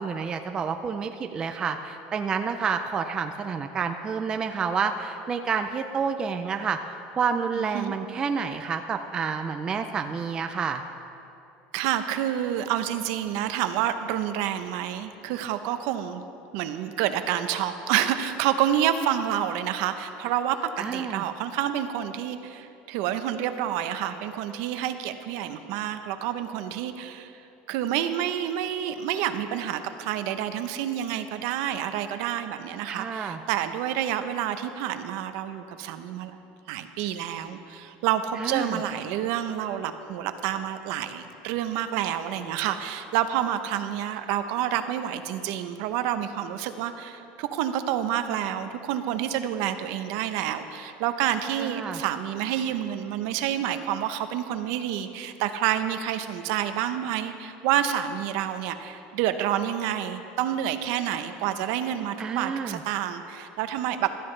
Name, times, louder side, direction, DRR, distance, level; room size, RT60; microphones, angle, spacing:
voice 1, 0.0-10.8 20.8-21.2 32.9-33.4 38.4-38.8 51.6-52.0 62.2-62.8, right 6 dB, 20° right, 6 dB, 0.4 m, -29 dB
voice 2, 7.5-7.9 11.7-16.2 16.5-27.3 27.7-36.4 36.7-64.1, right 10 dB, 60° right, 9 dB, 0.7 m, -28 dB
16.0 x 13.0 x 3.2 m, 2.8 s
cardioid pair, 175°, 4 cm